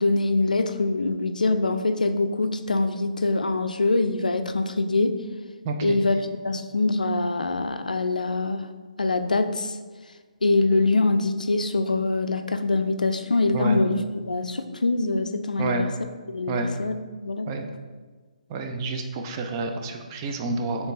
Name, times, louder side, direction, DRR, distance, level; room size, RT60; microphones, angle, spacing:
voice 1, 0.0-5.2 5.8-8.7 9.0-9.8 10.4-15.9 16.3-16.9 17.2-17.7, left 3 dB, 80° left, 8 dB, 0.3 m, -24 dB
voice 2, 5.6-6.0 13.5-13.8 15.6-15.9 16.5-16.7 17.5-17.6 18.5-20.9, right 3 dB, 30° right, 4 dB, 0.4 m, -28 dB
5.1 x 3.2 x 2.6 m, 1.4 s
figure-of-eight pair, 140°, 4 cm